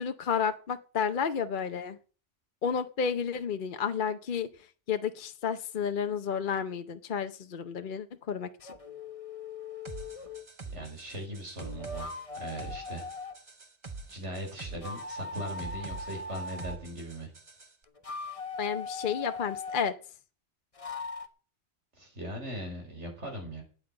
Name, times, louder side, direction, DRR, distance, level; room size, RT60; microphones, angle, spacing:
voice 1, 0.0-2.0 2.6-8.7 18.6-20.0, left 7 dB, 50° left, 9 dB, 0.8 m, -31 dB
sound 1, 8.6-10.5 11.6-13.4 14.7-16.8 17.9-19.9 20.8-21.3, left 3 dB, 30° left, 1.2 m, -40 dB
sound 2, 9.8-17.7, right 3 dB, 25° right, 1.0 m, -45 dB
voice 2, 10.7-13.1 14.1-17.3 22.0-23.6, right 1 dB, 70° right, 2 dB, 5.2 m, -39 dB
9.2 x 9.0 x 8.8 m, 0.39 s
omnidirectional pair, 1.2 m